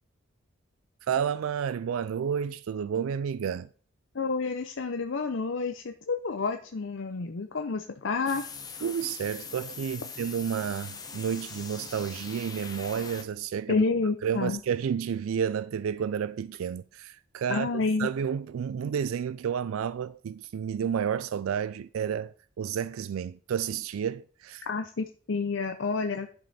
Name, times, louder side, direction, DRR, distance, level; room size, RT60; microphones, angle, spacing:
voice 1, 1.1-3.7 8.8-13.8 14.2-17.7 18.0-24.6, right 8 dB, 85° right, 0.3 m, -31 dB
voice 2, 4.1-8.5 13.7-14.6 17.5-18.1 24.7-26.3, left 4 dB, 70° left, 0.6 m, -29 dB
alias effecting, 8.3-13.2, left 5 dB, 20° left, 0.9 m, -42 dB
10.5 x 5.3 x 4.2 m
head